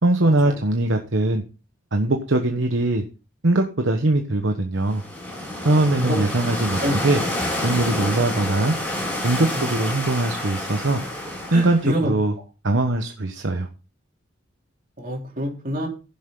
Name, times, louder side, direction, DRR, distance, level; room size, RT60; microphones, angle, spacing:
voice 1, 0.0-1.4 1.9-3.0 3.4-5.0 5.6-7.2 7.6-8.7 9.2-11.0 11.5-12.3 12.6-13.7, right 2 dB, 60° right, 4 dB, 1.1 m, -21 dB
sound 1, 4.8-11.9, left 1 dB, 10° left, 6.1 m, -28 dB
voice 2, 11.5-12.1 15.0-15.9, equal, 40° right, 0 dB, 3.4 m, -26 dB
15.5 x 7.1 x 3.9 m, 0.32 s
head